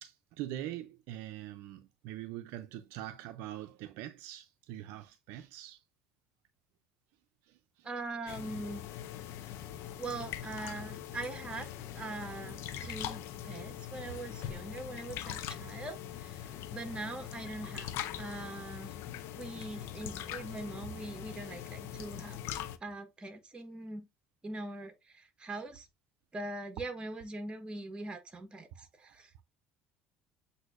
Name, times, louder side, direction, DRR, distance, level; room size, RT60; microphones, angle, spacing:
voice 1, 0.0-5.8 7.8-7.9 13.4-13.6 14.4-14.5 28.8-28.9, right 13 dB, 75° right, 0.5 m, -43 dB
voice 2, 7.8-8.8 10.0-11.7 11.9-18.9 19.4-22.4 22.8-24.1 24.4-25.9 26.3-29.4, right 2 dB, 20° right, 1.2 m, -42 dB
sound 1, 8.3-22.8, left 11 dB, 65° left, 0.6 m, -42 dB
7.9 x 2.7 x 2.5 m
supercardioid pair, 90°, 4 cm